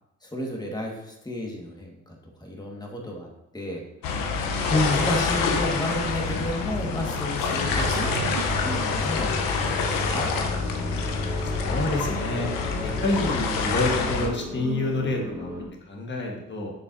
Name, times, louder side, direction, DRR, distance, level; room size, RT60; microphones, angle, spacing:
voice 1, 0.2-4.2 4.9-8.1 8.6-10.3, left 1 dB, 10° left, -1 dB, 1.6 m, -33 dB
sound 1, 4.0-14.3, left 4 dB, 90° left, 0.9 m, -26 dB
voice 2, 4.7-5.0 11.4-12.5 12.8-16.7, left 2 dB, 35° left, 1 dB, 1.4 m, -27 dB
sound 2, 4.9-15.7, left 1 dB, 5° right, 2.6 m, -38 dB
sound 3, 7.7-12.5, right 9 dB, 70° right, 0.5 m, -37 dB
6.8 x 6.4 x 2.7 m, 0.84 s
cardioid pair, 85°, 33 cm